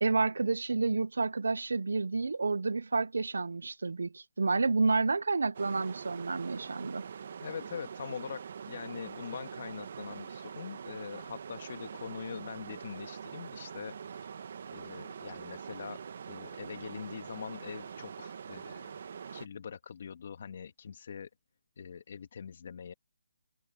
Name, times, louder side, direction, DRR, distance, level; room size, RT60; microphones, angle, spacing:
voice 1, 0.0-7.0, right 3 dB, 85° right, 0.8 m, -30 dB
sound 1, 5.5-19.5, right 7 dB, 40° right, 1.4 m, -44 dB
voice 2, 7.4-14.3 14.7-16.0 16.3-19.0 19.3-21.3 21.8-22.9, left 7 dB, 40° left, 2.1 m, -43 dB
hypercardioid pair, 175°, 0 cm